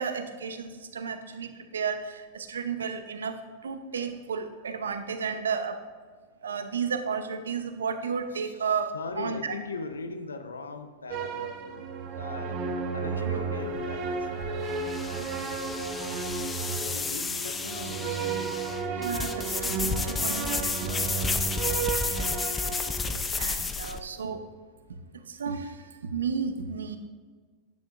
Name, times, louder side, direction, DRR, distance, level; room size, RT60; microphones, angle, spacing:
voice 1, 0.0-3.4 3.6-5.8 6.4-9.5 19.0-21.2 21.6-22.3 23.4-24.4 25.3-25.8 26.0-27.0, right 6 dB, 80° right, 9 dB, 0.8 m, -33 dB
voice 2, 8.4-12.6 12.9-15.6 16.8-18.7, left 3 dB, 90° left, 8 dB, 0.7 m, -40 dB
sound 1, 11.1-23.2, right 5 dB, 45° right, 1.0 m, -33 dB
sound 2, 13.6-24.0, left 4 dB, 20° left, 0.6 m, -32 dB
10.0 x 9.3 x 2.5 m, 1.5 s
hypercardioid pair, 100°, 0 cm